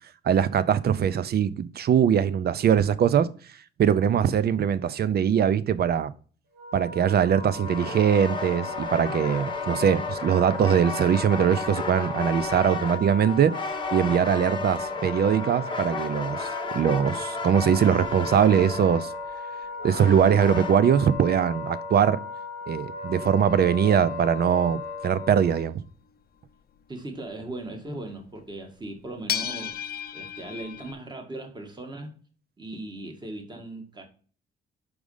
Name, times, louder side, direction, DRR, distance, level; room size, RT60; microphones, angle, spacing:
voice 1, 0.2-3.3 3.8-6.1 6.7-13.5 13.9-19.1 19.8-22.2 22.7-25.8, right 8 dB, 50° right, 0.6 m, -22 dB
Wind instrument woodwind instrument, 6.5-25.6, left 3 dB, 80° right, 3.4 m, -36 dB
sound 1, 7.6-20.8, left 4 dB, 25° left, 1.0 m, -34 dB
sound 2, 24.1-25.7 28.4-28.5 29.3-30.9, left 9 dB, 50° left, 0.6 m, -33 dB
voice 2, 26.9-32.1 32.6-34.1, right 2 dB, 20° right, 1.7 m, -38 dB
5.1 x 4.7 x 5.4 m
cardioid pair, 90°, 20 cm